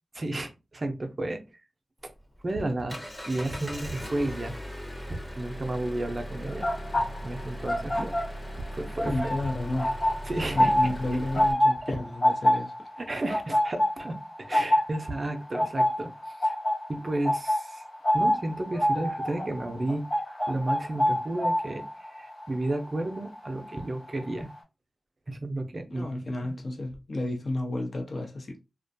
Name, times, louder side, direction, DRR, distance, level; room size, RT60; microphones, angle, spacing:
voice 1, 0.1-1.4 2.0-2.1 2.4-4.6 5.1-6.7 7.2-8.2 8.7-9.3 10.2-10.9 11.9-12.0 13.0-16.5 16.9-17.8 18.1-20.1 20.5-24.5 25.3-26.5, right 1 dB, 45° right, 0.5 m, -32 dB
Engine, 2.0-11.5, equal, 5° left, 0.7 m, -39 dB
sound 1, 6.5-8.7 8.9-23.8 24.1-24.4, left 1 dB, 90° left, 1.2 m, -27 dB
voice 2, 9.0-10.0 10.5-12.7 25.9-28.6, left 2 dB, 60° left, 0.7 m, -32 dB
2.4 x 2.2 x 2.6 m
cardioid pair, 55°, 0 cm